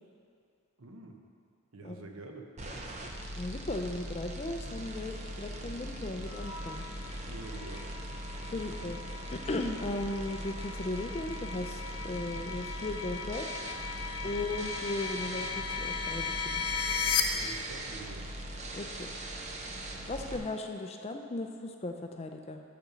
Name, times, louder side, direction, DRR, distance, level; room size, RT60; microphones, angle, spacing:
voice 1, 0.8-1.2 1.7-2.5 7.0-7.9 8.5-8.9 14.2-14.4 17.3-18.3, right 3 dB, 65° right, 3 dB, 0.8 m, -47 dB
sound 1, 2.6-20.4, right 1 dB, 30° right, 0.7 m, -41 dB
voice 2, 3.3-6.9 8.5-9.0 9.3-13.5 14.2-16.6 18.7-19.1 20.1-22.6, left 2 dB, 25° left, 4 dB, 0.4 m, -37 dB
sound 2, 6.3-17.2, left 6 dB, 75° left, 0.7 m, -37 dB
6.7 x 6.1 x 6.8 m, 2.3 s
head